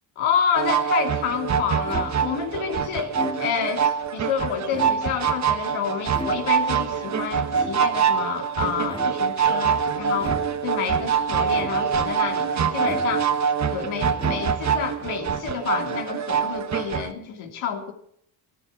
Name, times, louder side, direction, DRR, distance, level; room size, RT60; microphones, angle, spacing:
voice 1, 0.2-13.3 13.7-17.9, left 8 dB, 70° left, 3 dB, 2.9 m, -29 dB
sound 1, 0.5-17.1, right 7 dB, 35° right, 1.3 m, -24 dB
sound 2, 1.9-2.4 3.0-3.8 4.6-5.4 6.1-6.8 7.5-8.2 8.8-9.4 10.2-10.8 11.5-12.1 12.8-13.5 14.1-14.9, left 1 dB, 10° left, 1.7 m, -37 dB
14.0 x 12.5 x 7.1 m, 0.67 s
cardioid pair, 105°, 50 cm